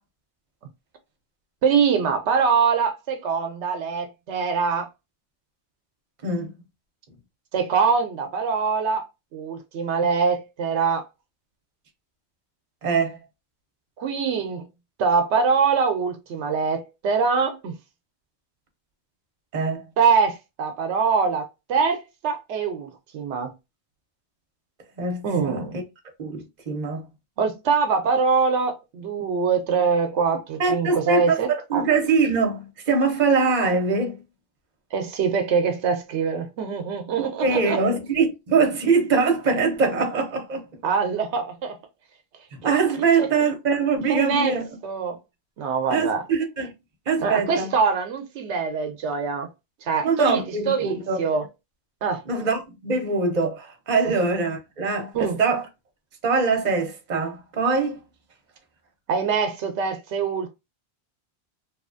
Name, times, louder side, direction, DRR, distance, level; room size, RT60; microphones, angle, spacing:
voice 1, 1.6-4.9 7.5-9.0 9.3-11.0 14.0-14.7 15.0-17.8 20.0-21.4 21.7-23.5 25.2-25.7 27.4-31.8 34.9-37.8 40.8-41.8 43.2-43.3 44.1-44.6 44.8-45.2 45.6-46.2 47.2-49.5 49.8-51.4 52.0-52.2 55.1-55.4 59.1-60.5, right 5 dB, 80° right, 0.9 m, -23 dB
voice 2, 6.2-6.5 12.8-13.2 19.5-19.8 25.0-25.8 26.2-27.1 30.6-34.2 37.4-40.6 42.6-44.7 45.9-46.7 47.1-47.7 50.0-51.2 52.3-55.7 56.2-58.0, right 4 dB, 45° right, 0.8 m, -23 dB
2.9 x 2.3 x 2.5 m
omnidirectional pair, 1.1 m